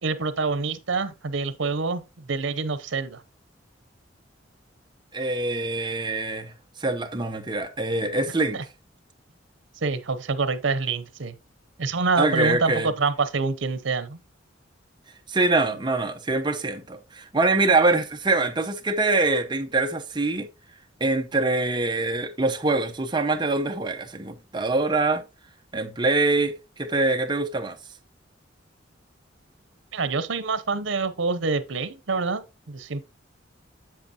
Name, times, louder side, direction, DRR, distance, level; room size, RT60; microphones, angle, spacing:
voice 1, 0.0-3.2 8.5-8.6 9.8-11.3 11.8-14.2 29.9-33.0, right 4 dB, 85° right, 0.8 m, -26 dB
voice 2, 5.1-6.5 6.8-8.6 12.2-12.9 15.3-20.5 21.0-25.2 25.7-27.8, right 3 dB, 25° right, 0.8 m, -24 dB
7.7 x 7.2 x 2.8 m
head